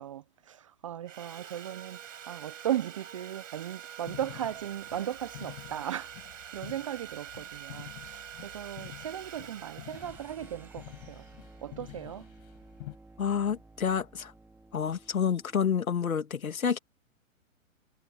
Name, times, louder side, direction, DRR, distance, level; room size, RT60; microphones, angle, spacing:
voice 1, 0.0-2.0 2.3-6.1 6.5-11.2 11.6-12.3, right 11 dB, 25° right, 0.4 m, -37 dB
Sawing, 1.1-12.1, right 9 dB, 65° right, 7.5 m, -46 dB
sound 1, 4.0-13.0, left 23 dB, 40° left, 7.4 m, -49 dB
sound 2, 9.9-16.0, right 2 dB, 5° right, 3.2 m, -54 dB
voice 2, 13.2-14.3 14.7-16.8, left 7 dB, 85° left, 2.0 m, -29 dB
hypercardioid pair, 130°, 41 cm